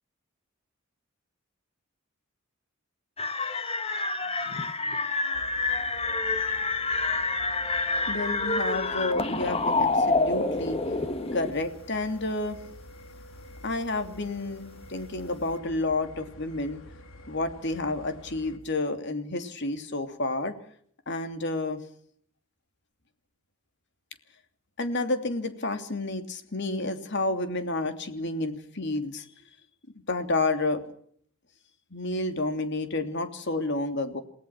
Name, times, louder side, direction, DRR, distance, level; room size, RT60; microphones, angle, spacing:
sound 1, 3.2-11.5, left 3 dB, 30° left, 1.7 m, -27 dB
sound 2, 5.3-18.6, left 1 dB, 85° left, 3.3 m, -48 dB
voice 1, 8.1-10.8 11.3-12.6 13.6-16.8 17.3-20.5 21.1-21.8 24.8-29.2 30.1-30.8 31.9-34.2, left 2 dB, 60° left, 7 dB, 3.0 m, -30 dB
28.5 x 19.0 x 6.1 m, 0.62 s
head